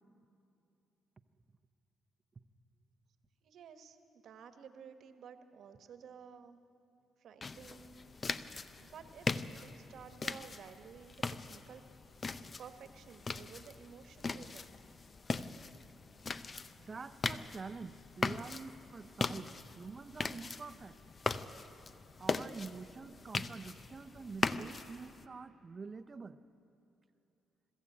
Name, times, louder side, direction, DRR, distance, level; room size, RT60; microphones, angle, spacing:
voice 1, 3.4-6.6 7.2-8.2 8.7-11.2 11.5-11.8 12.6-14.7, right 7 dB, 70° right, 8 dB, 1.3 m, -53 dB
sound 1, 7.4-25.2, left 4 dB, 35° left, 0.6 m, -40 dB
voice 2, 16.9-21.0 22.2-26.4, right 4 dB, 35° right, 12 dB, 0.7 m, -47 dB
22.0 x 13.5 x 8.6 m, 2.7 s
cardioid pair, 90°, 0 cm